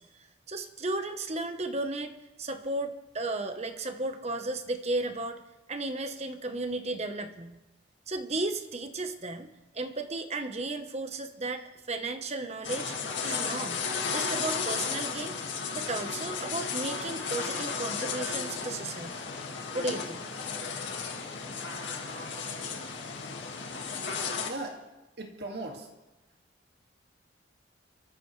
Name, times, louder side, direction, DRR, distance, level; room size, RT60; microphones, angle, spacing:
voice 1, 0.0-5.4 5.7-7.6 8.1-9.5 9.7-12.9 13.2-15.4 15.7-19.2 19.7-20.2, right 2 dB, 35° right, 7 dB, 1.1 m, -34 dB
sound 1, 12.6-24.5, left 5 dB, 80° left, 2.0 m, -34 dB
voice 2, 24.5-24.9 25.2-25.9, right 2 dB, 60° right, 2 dB, 2.2 m, -38 dB
26.5 x 14.0 x 3.3 m, 1.0 s
head